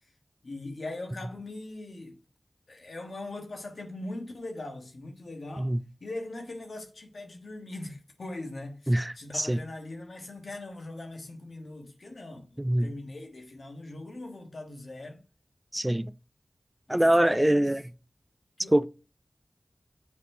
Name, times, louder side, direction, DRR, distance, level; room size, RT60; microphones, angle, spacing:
voice 1, 0.4-2.2 2.7-5.7 6.0-15.2 16.9-17.7 18.6-18.9, left 2 dB, 80° left, 1.4 m, -40 dB
voice 2, 8.9-9.6 12.6-12.9 15.7-16.1 16.9-17.8 18.7-18.9, right 1 dB, 15° right, 0.3 m, -24 dB
7.4 x 4.2 x 4.3 m
wide cardioid pair, 45°, 0 cm